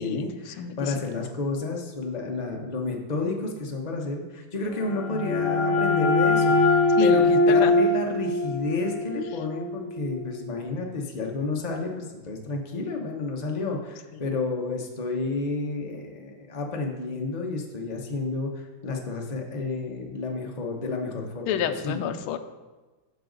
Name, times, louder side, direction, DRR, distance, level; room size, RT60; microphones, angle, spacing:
voice 1, 0.0-22.1, left 3 dB, 50° left, 1 dB, 0.5 m, -31 dB
sound 1, 4.7-10.3, left 2 dB, 65° left, 1.5 m, -22 dB
voice 2, 21.5-22.4, left 9 dB, 85° left, 8 dB, 1.5 m, -28 dB
10.0 x 6.3 x 3.9 m, 1.2 s
omnidirectional pair, 2.3 m